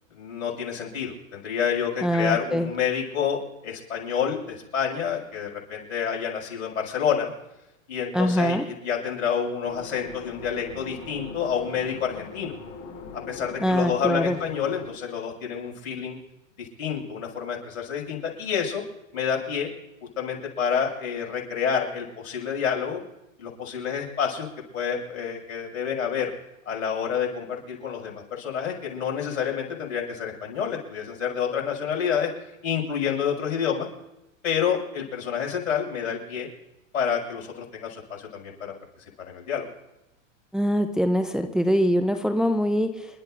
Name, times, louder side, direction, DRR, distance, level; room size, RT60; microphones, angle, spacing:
voice 1, 0.1-7.3 7.9-12.5 13.3-16.2 16.6-18.8 19.1-19.7 20.2-23.0 23.4-24.5 24.7-26.3 26.7-32.3 32.6-33.9 34.4-36.5 36.9-38.7 39.2-39.7, left 7 dB, 80° left, 0 dB, 6.5 m, -28 dB
voice 2, 2.0-2.7 8.1-8.6 13.6-14.4 40.5-43.1, equal, ahead, 6 dB, 0.7 m, -23 dB
sound 1, 9.6-14.9, left 4 dB, 45° left, 6.5 m, -41 dB
29.5 x 12.5 x 2.6 m, 0.93 s
hypercardioid pair, 120°, 40 cm